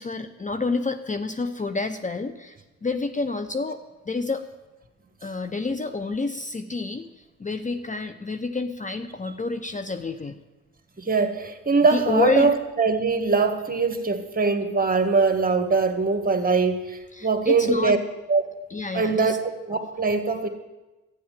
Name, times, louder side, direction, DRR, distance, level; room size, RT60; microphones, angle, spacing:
voice 1, 0.0-3.8 4.0-4.5 5.2-10.4 11.9-12.6 17.1-18.0 18.7-19.4, left 3 dB, 25° left, 8 dB, 0.8 m, -28 dB
voice 2, 11.0-18.0 18.3-18.4 18.9-19.3 19.7-20.5, right 4 dB, 30° right, 6 dB, 2.0 m, -22 dB
12.0 x 9.5 x 7.5 m, 1.1 s
supercardioid pair, 55°, 31 cm